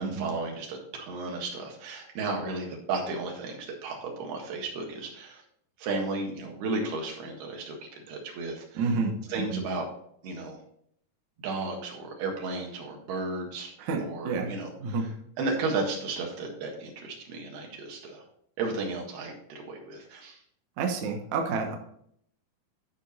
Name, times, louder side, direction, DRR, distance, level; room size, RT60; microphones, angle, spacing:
voice 1, 0.0-5.4 5.8-7.8 8.1-9.0 9.3-9.9 10.2-10.6 11.4-13.7 14.0-18.2 18.6-20.4, right 3 dB, 80° right, 1 dB, 3.6 m, -34 dB
voice 2, 8.8-9.6 13.8-14.5 14.8-15.1 20.8-21.8, right 4 dB, 65° right, 2 dB, 2.1 m, -29 dB
11.5 x 5.2 x 4.2 m, 0.67 s
omnidirectional pair, 4.4 m